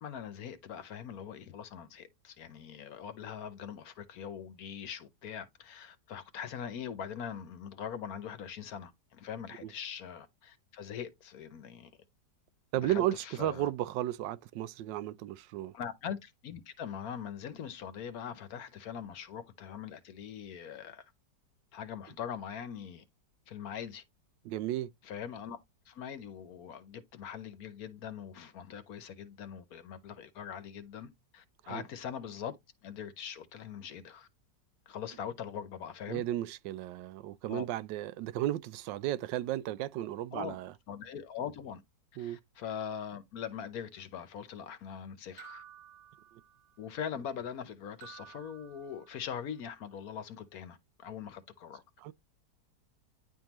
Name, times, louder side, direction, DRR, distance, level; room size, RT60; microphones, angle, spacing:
voice 1, 0.0-11.9 12.7-13.7 15.7-21.1 21.7-23.0 23.5-24.0 25.0-25.6 25.9-32.6 32.8-34.3 34.9-36.2 37.5-37.7 40.3-40.6 40.9-41.8 42.2-45.6 46.8-51.8, left 8 dB, 65° left, 1.2 m, -42 dB
voice 2, 12.7-15.7 24.4-24.9 31.6-31.8 36.1-40.7 42.2-42.4 46.3-46.4 52.0-52.1, right 13 dB, 90° right, 1.3 m, -34 dB
sound 1, 45.4-46.8 48.0-49.5, right 10 dB, 60° right, 1.3 m, -54 dB
10.5 x 3.7 x 2.9 m
omnidirectional pair, 1.9 m